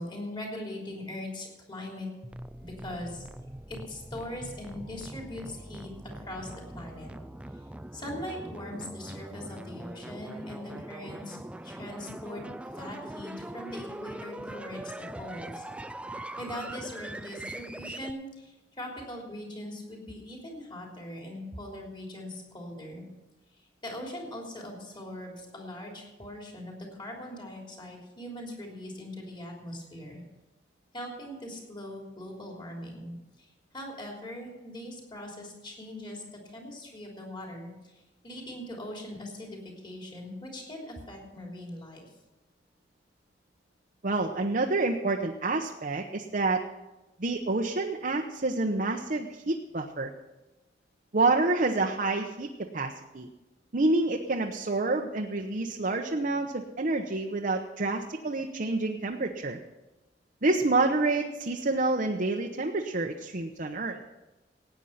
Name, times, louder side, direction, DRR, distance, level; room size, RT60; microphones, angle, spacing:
voice 1, 0.0-2.1 2.6-3.2 3.7-5.9 6.1-7.1 7.9-11.4 11.6-12.4 12.7-15.7 16.4-23.0 23.8-30.2 30.9-33.5 33.7-37.9 38.2-42.0, left 1 dB, 25° left, 0 dB, 3.3 m, -41 dB
sound 1, 2.2-18.1, right 1 dB, 5° right, 0.4 m, -42 dB
voice 2, 44.0-46.6 47.2-50.1 51.1-53.3 53.7-59.6 60.4-64.0, right 3 dB, 50° right, 1 dB, 0.9 m, -28 dB
17.5 x 9.2 x 5.7 m, 1.0 s
head